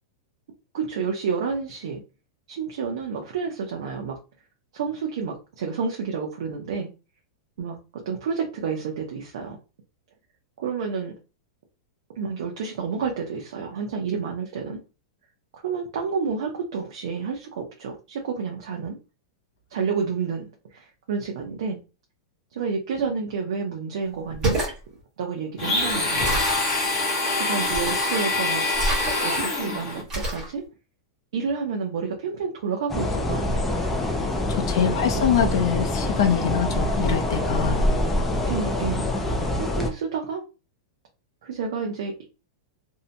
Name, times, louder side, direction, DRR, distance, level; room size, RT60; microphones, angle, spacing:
voice 1, 0.7-2.0 2.5-4.2 4.7-6.9 7.6-7.8 8.1-9.6 10.6-11.1 12.2-14.8 15.5-19.0 19.7-21.8 22.5-24.6 25.2-26.4 27.3-28.6 29.2-30.6 31.3-33.8 34.8-35.3 38.5-39.1 39.5-40.4 41.4-42.2, right 5 dB, 65° right, 1 dB, 0.6 m, -30 dB
sound 1, 24.3-24.8 26.2-26.7 27.7-28.2 28.7-29.5 30.1-30.5, right 2 dB, 20° right, 1.1 m, -27 dB
Domestic sounds home sounds, 25.6-30.0, left 2 dB, 25° left, 0.7 m, -25 dB
sound 2, 32.9-39.9, left 1 dB, 5° left, 0.3 m, -25 dB
voice 2, 34.5-37.8, left 7 dB, 60° left, 5 dB, 0.5 m, -24 dB
2.7 x 2.1 x 2.6 m, 0.31 s
supercardioid pair, 175°, 3 cm